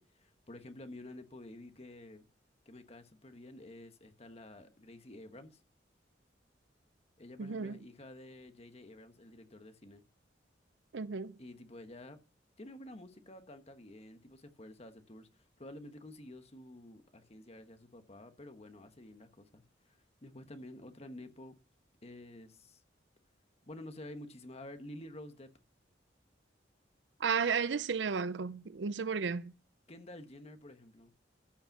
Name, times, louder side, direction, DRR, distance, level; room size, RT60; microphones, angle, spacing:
voice 1, 0.0-2.3 2.6-5.6 7.2-10.0 11.4-12.2 12.6-21.6 22.0-22.8 23.6-25.5 29.9-31.1, left 1 dB, 35° left, 1.3 m, -50 dB
voice 2, 7.4-7.8 10.9-11.4 27.2-29.5, right 5 dB, 75° right, 0.5 m, -33 dB
14.5 x 5.5 x 5.9 m
head